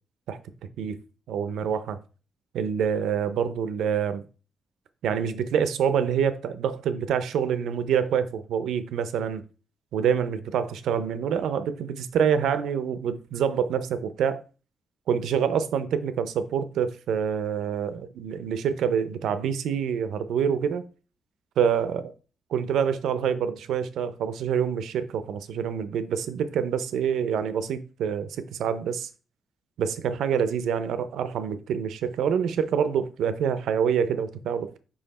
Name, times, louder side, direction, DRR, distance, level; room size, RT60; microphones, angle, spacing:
voice 1, 1.3-2.0 2.5-4.2 5.0-9.4 9.9-14.4 15.1-20.8 21.6-22.1 22.5-29.1 29.8-34.8, right 7 dB, 90° right, 0.6 m, -26 dB
5.6 x 5.2 x 4.2 m
cardioid pair, 130°, 0 cm